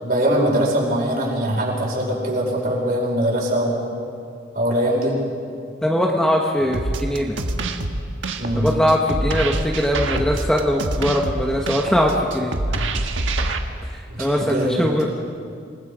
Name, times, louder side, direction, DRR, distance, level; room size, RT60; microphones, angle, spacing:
voice 1, 0.0-3.9 4.5-5.2 8.4-8.7 14.1-14.9, right 1 dB, 50° right, -3 dB, 5.5 m, -22 dB
voice 2, 5.8-7.4 8.6-12.6 13.9-15.1, equal, 5° left, -1 dB, 1.2 m, -21 dB
sound 1, 6.7-13.6, right 2 dB, 90° right, 1.5 m, -25 dB
27.5 x 19.5 x 5.0 m, 2.3 s
head